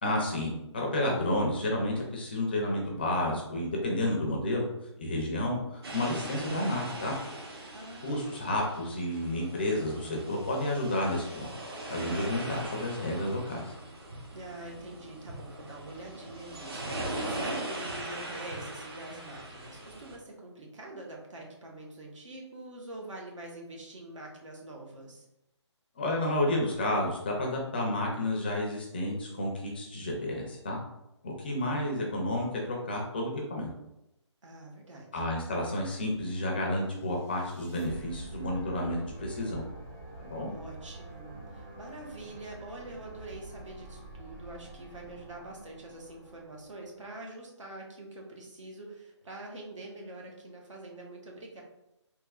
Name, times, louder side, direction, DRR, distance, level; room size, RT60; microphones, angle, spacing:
voice 1, 0.0-4.7 5.0-7.1 8.0-11.5 11.9-13.7 26.0-30.8 31.2-33.7 35.1-39.6 40.2-40.5, left 1 dB, 20° left, -1 dB, 0.4 m, -31 dB
sound 1, 5.8-20.2, right 1 dB, 55° right, 0.8 m, -40 dB
voice 2, 7.7-8.5 14.3-25.3 34.4-35.2 40.5-51.6, right 2 dB, 80° right, -1 dB, 1.1 m, -45 dB
sound 2, 36.9-47.1, right 2 dB, 25° right, 1.1 m, -47 dB
3.5 x 2.8 x 2.3 m, 0.87 s
hypercardioid pair, 165°, 16 cm